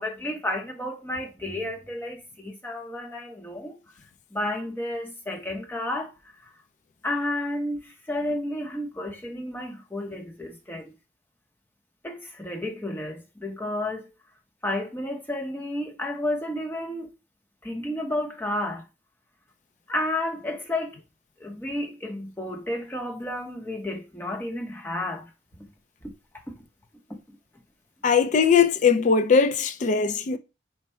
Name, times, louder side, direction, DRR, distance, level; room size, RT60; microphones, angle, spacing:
voice 1, 0.0-3.8 4.3-6.1 7.0-10.9 12.0-14.0 14.6-17.1 17.6-18.9 19.9-21.0 21.4-25.3 26.5-26.6, left 1 dB, 10° left, 0.7 m, -31 dB
voice 2, 28.0-30.4, left 6 dB, 45° left, 0.3 m, -20 dB
4.5 x 2.1 x 4.2 m
head